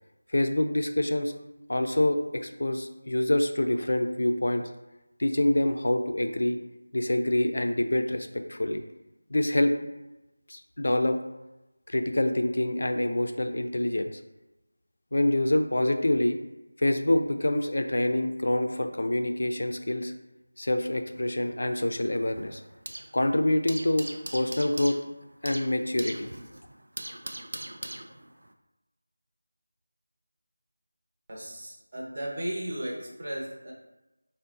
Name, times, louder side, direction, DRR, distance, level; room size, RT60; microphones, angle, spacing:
voice 1, 0.3-1.3 1.7-4.7 5.2-6.6 6.9-8.8 9.3-9.7 10.5-11.2 11.9-14.2 15.1-16.4 16.8-20.1 20.6-22.6 23.1-24.1 24.3-25.0 25.4-26.4, left 1 dB, 60° left, 6 dB, 0.3 m, -26 dB
sound 1, 21.1-23.2 23.5-28.5, right 1 dB, 65° right, 0.4 m, -41 dB
voice 2, 31.3-33.7, right 1 dB, 35° right, -4 dB, 0.8 m, -35 dB
3.6 x 2.0 x 3.9 m, 1.0 s
figure-of-eight pair, 175°, 0 cm